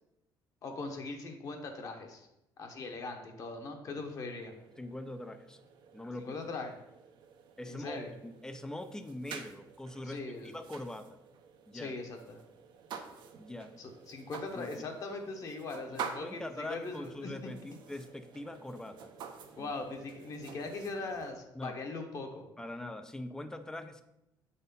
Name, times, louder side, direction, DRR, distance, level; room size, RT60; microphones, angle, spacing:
voice 1, 0.6-2.3 2.6-4.5 6.2-6.7 7.7-8.1 10.0-10.5 11.7-12.2 13.8-17.3 19.6-22.4, left 3 dB, 45° left, 3 dB, 1.3 m, -40 dB
sound 1, 3.9-21.3, right 6 dB, 65° right, 0.8 m, -49 dB
voice 2, 4.8-5.6 5.9-6.4 7.6-11.1 11.7-11.9 13.4-13.7 14.6-14.9 16.2-19.1 19.6-19.7 21.5-21.8 22.6-24.0, left 1 dB, 5° left, 9 dB, 0.5 m, -42 dB
7.8 x 4.2 x 5.4 m, 0.89 s
cardioid pair, 145°, 8 cm